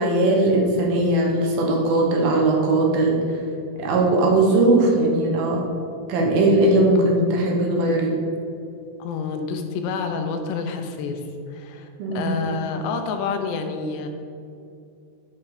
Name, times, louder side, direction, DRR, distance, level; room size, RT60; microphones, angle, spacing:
voice 1, 0.0-3.2 3.8-5.6 6.1-8.1 12.0-12.4, right 2 dB, 70° right, 0 dB, 2.9 m, -19 dB
voice 2, 6.9-7.3 9.0-11.2 11.5-14.1, left 5 dB, 85° left, 5 dB, 3.1 m, -28 dB
11.0 x 5.6 x 5.0 m, 2.5 s
omnidirectional pair, 4.8 m